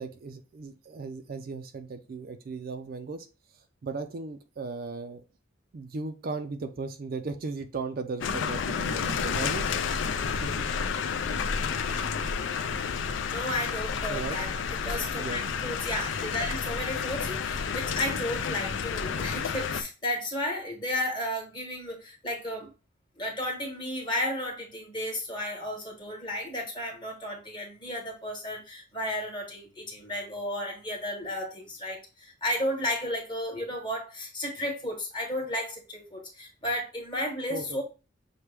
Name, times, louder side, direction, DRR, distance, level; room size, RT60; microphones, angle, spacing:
voice 1, 0.0-3.3 3.8-5.2 5.7-9.6 10.2-10.7 14.1-14.4 15.1-15.4 37.5-37.8, right 4 dB, 50° right, 7 dB, 0.4 m, -36 dB
sound 1, 8.2-19.8, left 6 dB, 70° left, 0.4 m, -30 dB
voice 2, 13.3-14.5 14.8-22.7 23.2-37.8, left 1 dB, 25° left, 1 dB, 1.2 m, -33 dB
5.9 x 2.2 x 3.3 m, 0.32 s
head